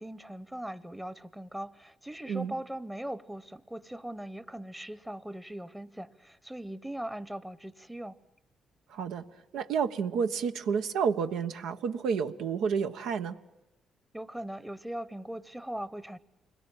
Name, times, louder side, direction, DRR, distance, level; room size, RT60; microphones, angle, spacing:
voice 1, 0.0-8.2 14.1-16.2, right 1 dB, 5° right, 0.9 m, -40 dB
voice 2, 8.9-13.4, right 6 dB, 85° right, 1.2 m, -30 dB
29.0 x 21.5 x 8.9 m
cardioid pair, 90°, 0 cm